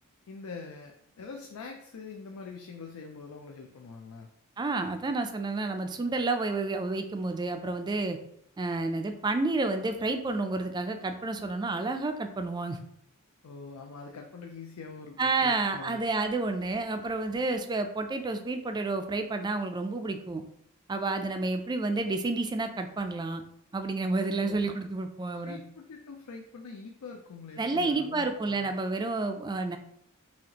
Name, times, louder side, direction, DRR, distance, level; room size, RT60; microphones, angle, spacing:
voice 1, 0.3-4.3 13.4-16.1 24.3-24.7 25.4-28.8, left 4 dB, 80° left, 2 dB, 0.4 m, -44 dB
voice 2, 4.6-8.2 8.6-12.8 15.2-20.4 20.9-23.4 23.7-25.6 27.6-29.8, right 3 dB, 20° right, 7 dB, 0.3 m, -30 dB
4.2 x 2.8 x 2.8 m, 0.69 s
head